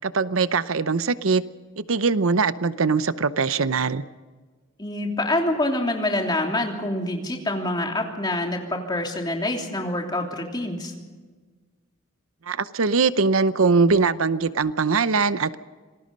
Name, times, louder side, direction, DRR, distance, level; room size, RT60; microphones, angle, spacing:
voice 1, 0.0-1.4 1.8-4.0 12.5-15.6, right 4 dB, 80° right, 14 dB, 0.8 m, -21 dB
voice 2, 4.8-10.9, left 1 dB, 20° left, 1 dB, 3.1 m, -26 dB
27.0 x 19.5 x 5.3 m, 1.4 s
head